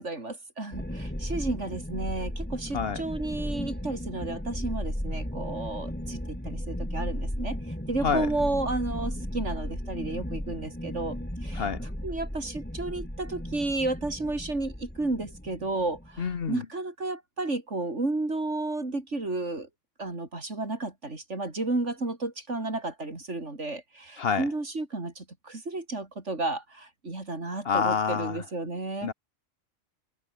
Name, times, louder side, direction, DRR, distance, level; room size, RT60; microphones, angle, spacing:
voice 1, 0.0-7.6 7.9-11.6 12.0-19.7 20.0-29.1, right 2 dB, 85° right, 4.7 m, -32 dB
sound 1, 0.7-16.5, equal, 10° left, 4.0 m, -35 dB
voice 2, 16.2-16.7 24.2-24.5 27.6-28.4 29.0-29.1, left 6 dB, 55° left, 1.3 m, -27 dB
omnidirectional pair, 1.2 m